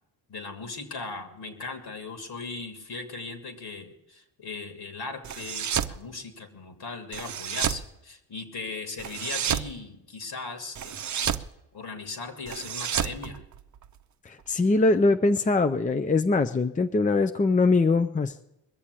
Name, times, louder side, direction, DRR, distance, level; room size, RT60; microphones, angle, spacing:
voice 1, 0.3-11.0 11.7-13.4, left 3 dB, 60° left, 6 dB, 2.7 m, -38 dB
sound 1, 5.2-6.0 7.1-7.9 9.0-9.7 10.8-11.5 12.5-14.0, right 9 dB, 40° right, 0.8 m, -30 dB
voice 2, 14.3-18.3, left 3 dB, 20° left, 8 dB, 0.6 m, -22 dB
21.5 x 7.2 x 8.3 m, 0.89 s
supercardioid pair, 70°, 43 cm